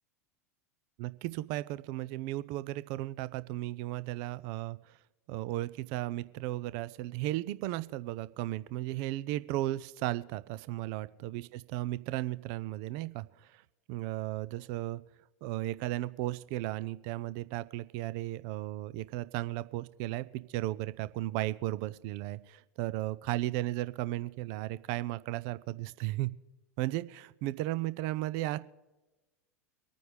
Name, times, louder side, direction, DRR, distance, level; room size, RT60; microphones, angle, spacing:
voice 1, 1.0-5.0 5.3-13.6 13.9-15.0 15.4-26.3 26.8-28.6, right 16 dB, 45° right, 16 dB, 0.5 m, -35 dB
24.5 x 9.3 x 3.4 m, 1.1 s
figure-of-eight pair, 85°, 9 cm